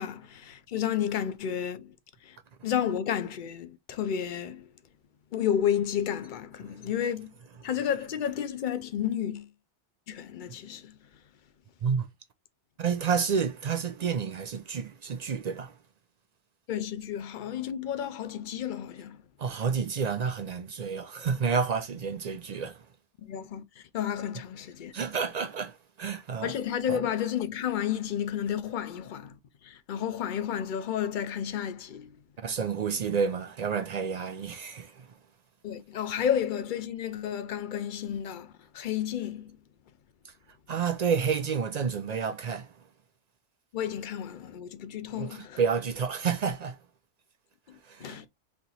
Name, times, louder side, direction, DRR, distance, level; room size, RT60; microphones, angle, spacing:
voice 1, 0.0-2.0 2.2-2.4 2.6-4.7 5.3-7.3 7.6-9.5 10.1-11.0 16.7-19.2 23.2-24.9 26.4-32.2 35.6-39.6 43.7-45.6 47.7-48.3, left 9 dB, 60° left, 0.5 m, -31 dB
voice 2, 12.8-15.7 19.4-22.8 24.9-26.5 26.9-27.0 32.4-35.1 40.7-42.7 45.1-46.8 47.9-48.3, right 6 dB, 60° right, 0.4 m, -30 dB
3.2 x 2.9 x 4.0 m
omnidirectional pair, 1.2 m